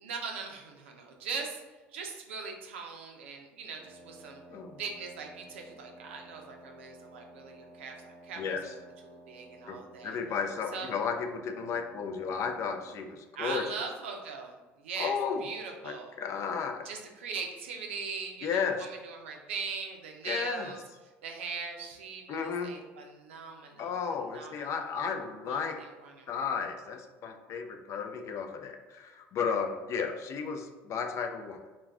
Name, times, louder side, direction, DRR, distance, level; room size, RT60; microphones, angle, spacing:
voice 1, 0.0-1.6 1.9-4.4 4.8-8.6 9.0-10.2 10.7-10.9 13.3-14.5 14.8-15.1 15.4-16.2 16.8-20.8 21.2-23.9 24.3-24.9 25.4-26.3, right 5 dB, 90° right, 2 dB, 0.4 m, -40 dB
Wind instrument woodwind instrument, 3.7-13.1, right 1 dB, 35° right, 0.5 m, -53 dB
voice 2, 8.4-8.7 9.7-13.7 15.0-15.4 15.8-16.8 18.4-18.8 20.2-20.7 22.3-22.7 23.8-25.8 26.3-31.6, left 6 dB, 50° left, 5 dB, 0.4 m, -33 dB
2.3 x 2.1 x 3.3 m, 1.3 s
hypercardioid pair, 75°, 6 cm